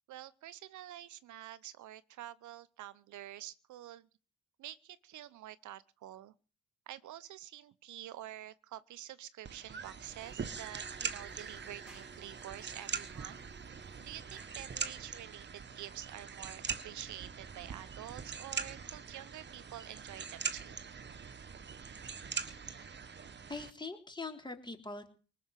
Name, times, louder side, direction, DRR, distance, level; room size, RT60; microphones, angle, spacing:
voice 1, 0.1-4.1 4.6-6.3 6.9-13.4 14.0-20.7, right 13 dB, 75° right, 0.9 m, -48 dB
sound 1, 9.4-23.7, right 6 dB, 35° right, 1.4 m, -42 dB
sound 2, 10.2-14.9, right 1 dB, 5° right, 3.9 m, -60 dB
voice 2, 22.5-23.1 23.5-25.1, left 3 dB, 15° left, 3.5 m, -44 dB
19.5 x 7.1 x 9.1 m
cardioid pair, 90°, 30 cm